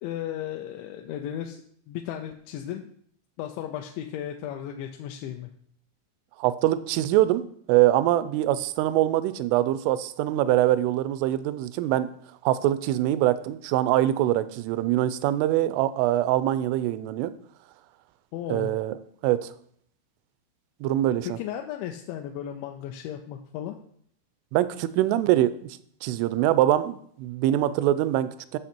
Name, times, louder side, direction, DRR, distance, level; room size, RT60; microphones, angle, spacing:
voice 1, 0.0-2.9 3.4-5.5 18.3-18.7 21.2-23.8, left 10 dB, 80° left, 4 dB, 2.7 m, -35 dB
voice 2, 6.4-12.1 12.4-17.3 18.5-18.9 19.2-19.5 20.8-21.4 24.5-25.5 26.0-28.6, right 13 dB, 85° right, 14 dB, 3.0 m, -23 dB
11.5 x 6.5 x 4.4 m, 0.64 s
omnidirectional pair, 5.7 m